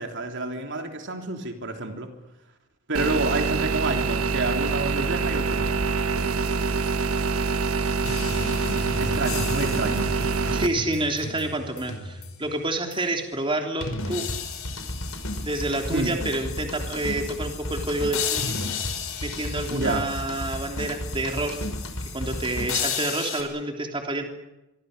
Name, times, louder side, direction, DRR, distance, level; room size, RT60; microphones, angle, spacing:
voice 1, 0.0-2.1 2.9-5.8 9.0-10.1 15.9-16.1 19.7-20.0, right 2 dB, 55° right, 4 dB, 3.4 m, -29 dB
sound 1, 2.9-10.7, right 4 dB, 75° right, 1.4 m, -25 dB
sound 2, 8.0-12.5 12.9-13.0 13.8-23.4, left 3 dB, 70° left, 5.7 m, -32 dB
voice 2, 10.5-14.2 15.4-18.6 19.2-21.6 22.1-24.2, right 2 dB, 25° right, 3 dB, 3.4 m, -28 dB
26.0 x 25.0 x 6.7 m, 0.97 s
head